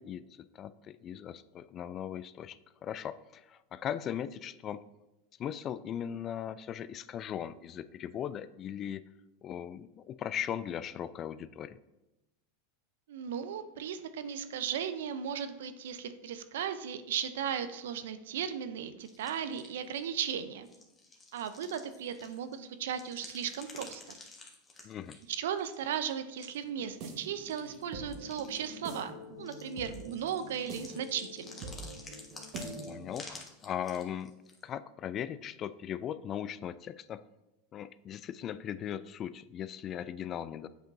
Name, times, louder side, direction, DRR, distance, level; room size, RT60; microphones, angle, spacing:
voice 1, 0.0-4.8 5.4-9.0 9.4-11.8 24.8-25.2 32.9-34.3 34.6-37.2 37.7-40.7, left 9 dB, 40° left, 16 dB, 0.3 m, -38 dB
voice 2, 13.1-20.7 21.3-24.2 25.3-31.7, right 8 dB, 75° right, 11 dB, 0.5 m, -36 dB
sound 1, 19.0-20.0 20.6-22.6 22.9-26.1 26.4-26.6 26.9-27.0 27.4-28.9 29.4-34.6, left 3 dB, 20° left, 1.4 m, -51 dB
sound 2, 26.7-33.2, right 1 dB, 50° right, 1.3 m, -45 dB
8.7 x 5.1 x 2.6 m, 0.96 s
hypercardioid pair, 95°, 0 cm